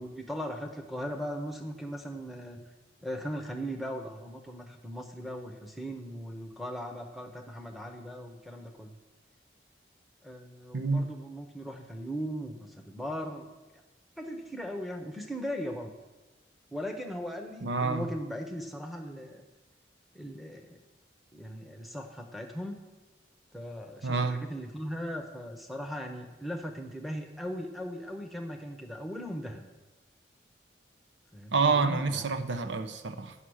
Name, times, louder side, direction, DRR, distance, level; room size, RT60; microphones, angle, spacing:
voice 1, 0.0-2.6 3.0-8.9 10.2-13.5 14.2-15.9 16.7-19.4 20.1-20.8 21.3-22.8 23.5-29.7 31.3-32.2, equal, ahead, 2 dB, 0.8 m, -38 dB
voice 2, 10.7-11.0 17.6-18.1 24.0-24.4 31.5-33.3, right 4 dB, 80° right, 9 dB, 0.7 m, -28 dB
9.8 x 5.6 x 6.3 m, 1.2 s
head